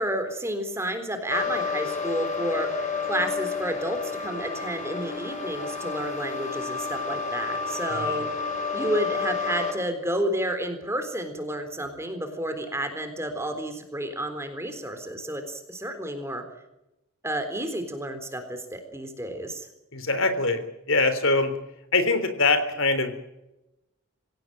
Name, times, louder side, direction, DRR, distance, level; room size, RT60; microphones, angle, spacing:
voice 1, 0.0-8.4 8.7-16.4 17.2-19.7, right 1 dB, 10° right, 7 dB, 3.8 m, -31 dB
sound 1, 1.3-9.7, left 4 dB, 35° left, 5.0 m, -30 dB
voice 2, 19.9-21.5 21.9-23.1, left 3 dB, 65° left, 10 dB, 3.6 m, -23 dB
26.0 x 17.0 x 9.0 m, 0.93 s
head